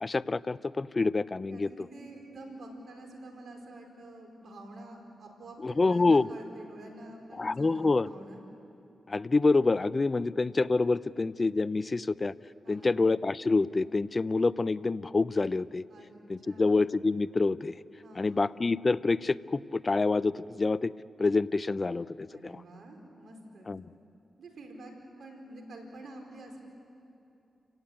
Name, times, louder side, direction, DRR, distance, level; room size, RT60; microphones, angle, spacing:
voice 1, 0.0-1.7 5.6-6.3 7.4-8.1 9.1-12.3 12.7-15.8 16.3-17.7 18.2-20.9 21.2-22.1 22.4-22.6 23.7-23.8, left 3 dB, 40° left, 18 dB, 0.6 m, -27 dB
voice 2, 1.5-8.4 10.1-10.3 12.6-13.0 15.9-16.1 16.4-16.9 18.0-18.6 22.3-23.7 24.4-24.9 25.2-26.6, right 1 dB, 75° right, 3 dB, 4.4 m, -48 dB
29.5 x 17.0 x 8.8 m, 2.8 s
supercardioid pair, 40°, 0 cm